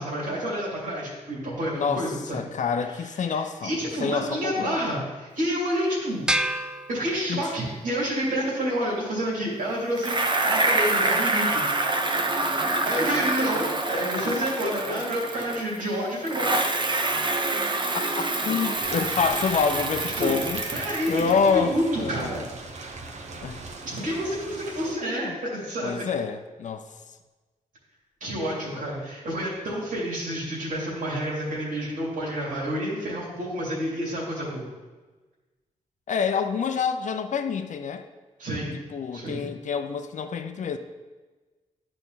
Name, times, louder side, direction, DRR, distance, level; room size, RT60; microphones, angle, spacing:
voice 1, 0.0-2.4 3.3-6.2 6.9-11.6 12.8-16.6 20.2-20.3 20.7-22.4 23.8-26.0 28.2-34.7 38.4-38.7 39.1-39.4, equal, 85° right, -6 dB, 2.7 m, -29 dB
voice 2, 1.7-4.8 7.3-7.4 14.2-15.0 17.9-20.6 21.1-22.4 23.4-23.6 25.2-25.4 25.8-26.9 28.2-28.3 28.6-28.8 36.1-38.1 38.9-40.8, left 6 dB, 65° left, 8 dB, 0.6 m, -27 dB
sound 1, 6.3-7.8, right 1 dB, 5° right, 0.5 m, -29 dB
Bicycle, 10.0-15.8 16.3-21.5, right 2 dB, 35° right, 0.8 m, -26 dB
sound 2, 18.8-24.9, right 3 dB, 60° right, 1.0 m, -39 dB
11.0 x 4.4 x 4.1 m, 1.3 s
cardioid pair, 60°, 14 cm